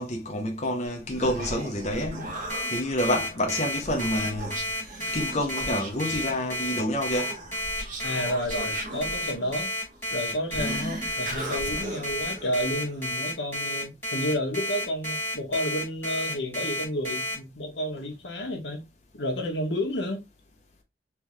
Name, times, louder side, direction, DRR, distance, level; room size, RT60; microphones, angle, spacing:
voice 1, 0.0-2.4 2.7-4.6 5.1-7.3 10.6-11.1, left 1 dB, 40° left, 0.8 m, -28 dB
Human voice, 0.9-13.1, right 1 dB, 45° right, 1.1 m, -38 dB
Alarm, 2.5-17.3, left 1 dB, 10° left, 1.7 m, -31 dB
voice 2, 8.0-9.7 10.1-10.8 11.2-18.8 19.1-20.2, equal, 85° left, 1.3 m, -31 dB
3.6 x 3.4 x 3.1 m
head